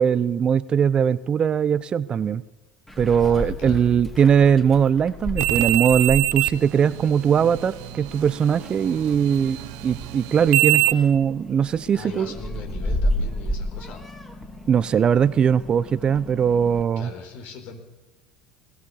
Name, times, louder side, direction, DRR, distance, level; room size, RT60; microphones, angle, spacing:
voice 1, 0.0-2.4 3.0-9.6 9.8-12.3 14.7-17.1, right 7 dB, 35° right, 18 dB, 0.7 m, -20 dB
Meow, 2.9-16.8, equal, 10° left, 3.0 m, -33 dB
voice 2, 3.2-3.8 11.9-14.0 17.0-17.8, left 5 dB, 55° left, 6 dB, 4.3 m, -39 dB
sound 1, 5.4-10.9, right 21 dB, 65° right, 1.0 m, -25 dB
21.0 x 17.5 x 7.2 m, 1.1 s
hypercardioid pair, 75°, 3 cm